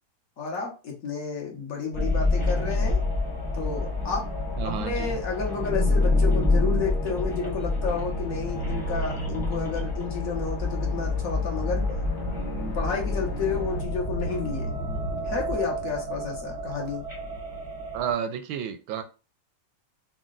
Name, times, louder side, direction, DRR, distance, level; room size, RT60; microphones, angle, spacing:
voice 1, 0.4-3.0 3.5-4.3 4.6-11.9 12.7-14.7 15.2-17.0, left 5 dB, 50° left, -1 dB, 1.2 m, -31 dB
sound 1, 1.9-18.1, left 2 dB, 20° right, 0.6 m, -28 dB
sound 2, 2.4-13.8, left 5 dB, 80° left, 1.6 m, -43 dB
voice 2, 4.6-5.2 17.9-19.0, right 9 dB, 75° right, 7 dB, 1.2 m, -31 dB
4.1 x 2.3 x 3.8 m, 0.33 s
omnidirectional pair, 2.4 m